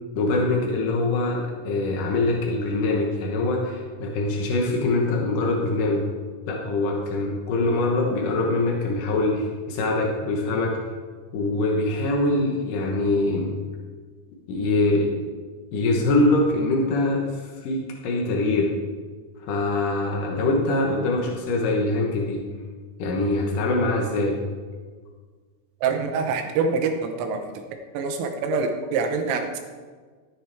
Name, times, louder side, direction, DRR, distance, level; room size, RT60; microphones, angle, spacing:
voice 1, 0.2-6.0 6.5-10.7 11.3-13.5 14.5-15.2 15.7-18.7 19.5-22.4 23.0-24.4, left 2 dB, 80° left, -1 dB, 1.9 m, -23 dB
voice 2, 25.8-27.6 27.9-29.6, right 4 dB, 80° right, 5 dB, 3.4 m, -25 dB
13.5 x 9.7 x 3.5 m, 1.5 s
omnidirectional pair, 5.9 m